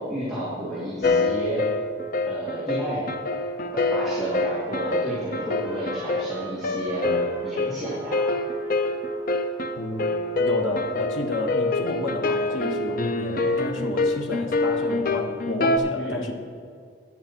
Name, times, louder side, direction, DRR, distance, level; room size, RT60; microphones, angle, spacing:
voice 1, 0.0-1.6 2.3-3.0 3.7-7.1 7.4-8.2 15.9-16.3, equal, ahead, -11 dB, 2.4 m, -31 dB
sound 1, 1.0-15.8, left 2 dB, 45° left, 0.6 m, -26 dB
Trumpet, 3.5-10.2, right 3 dB, 55° right, 2.8 m, -45 dB
voice 2, 9.7-10.1 10.4-16.3, left 1 dB, 80° left, 2 dB, 1.3 m, -30 dB
11.0 x 10.0 x 4.4 m, 2.3 s
head